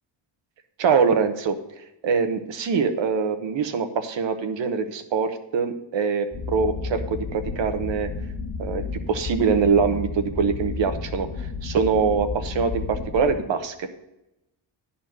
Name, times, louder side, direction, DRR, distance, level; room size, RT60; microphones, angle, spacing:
voice 1, 0.8-1.5 2.0-8.1 8.6-13.9, right 5 dB, 70° right, 8 dB, 1.2 m, -24 dB
sound 1, 6.3-13.4, left 4 dB, 25° left, 1.7 m, -32 dB
10.5 x 4.3 x 7.6 m, 0.90 s
cardioid pair, 80°, 46 cm